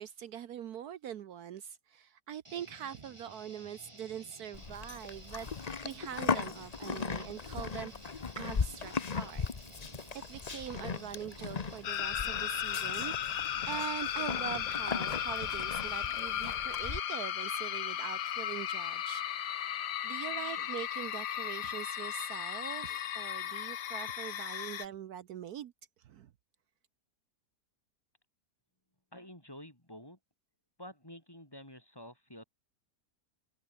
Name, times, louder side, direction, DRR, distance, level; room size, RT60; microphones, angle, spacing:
voice 1, 0.0-7.9 8.4-9.5 10.1-13.1 13.7-19.7 20.0-25.7 26.0-26.3, right 9 dB, 70° right, 1.3 m, -43 dB
sound 1, 2.4-16.2, right 1 dB, 15° right, 3.8 m, -54 dB
Livestock farm animals working animals, 4.5-17.0, left 5 dB, 30° left, 0.8 m, -38 dB
sound 2, 11.8-24.9, left 10 dB, 85° left, 1.6 m, -36 dB
voice 2, 29.1-30.2 30.8-32.4, left 1 dB, 15° left, 4.3 m, -49 dB
omnidirectional pair, 1.7 m